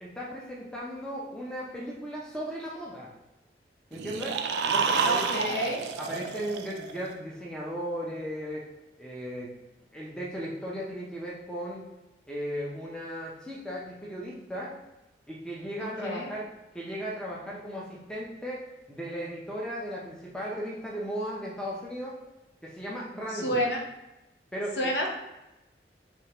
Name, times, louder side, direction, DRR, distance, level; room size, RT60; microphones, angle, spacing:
voice 1, 0.0-3.1 3.9-5.5 6.0-8.7 9.0-9.5 9.9-11.8 12.3-14.8 15.3-22.2 22.6-23.6 24.5-24.9, equal, 5° left, -4 dB, 0.6 m, -36 dB
sound 1, 3.9-7.1, right 5 dB, 75° right, 0.3 m, -29 dB
voice 2, 5.0-5.8 16.0-16.3 23.3-23.8 24.8-25.1, equal, 80° left, -1 dB, 0.7 m, -29 dB
3.4 x 3.2 x 2.9 m, 0.97 s
head